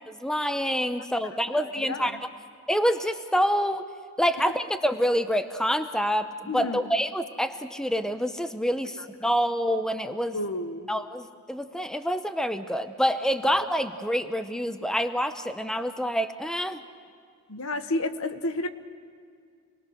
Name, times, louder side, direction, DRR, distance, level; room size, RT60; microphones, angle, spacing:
voice 1, 0.1-2.2 2.7-3.9 4.2-10.4 10.9-16.8, equal, 5° left, 9 dB, 0.6 m, -27 dB
voice 2, 1.6-2.2 6.5-6.8 10.3-10.9 17.5-18.7, left 2 dB, 70° left, 9 dB, 1.1 m, -31 dB
27.5 x 21.0 x 6.4 m, 2.2 s
head